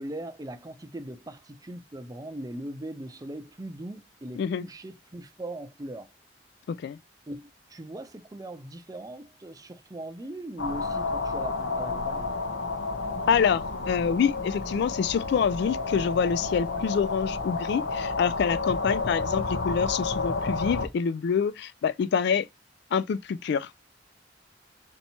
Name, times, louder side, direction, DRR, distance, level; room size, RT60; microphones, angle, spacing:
voice 1, 0.0-6.1 7.3-12.3, right 1 dB, 20° right, 0.5 m, -39 dB
voice 2, 4.4-4.7 6.7-7.0 13.3-22.5 22.9-23.7, left 6 dB, 65° left, 0.3 m, -26 dB
sound 1, 10.6-20.9, left 3 dB, 85° left, 0.9 m, -31 dB
4.4 x 2.9 x 4.1 m
head